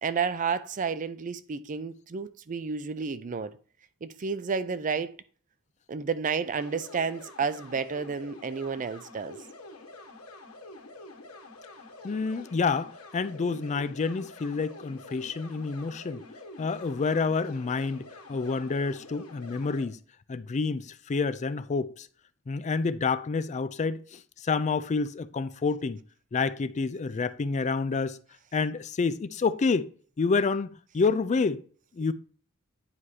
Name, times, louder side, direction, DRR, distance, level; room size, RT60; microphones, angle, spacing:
voice 1, 0.0-3.5 4.0-5.1 5.9-9.4, right 5 dB, 35° right, 0.5 m, -31 dB
sound 1, 6.6-19.8, left 2 dB, 90° left, 1.6 m, -47 dB
voice 2, 12.0-16.2 16.6-20.0 20.3-22.1 22.5-26.0 26.3-28.2 28.5-29.9 30.2-31.6 31.9-32.1, left 4 dB, 35° left, 0.4 m, -28 dB
9.7 x 4.8 x 2.8 m
head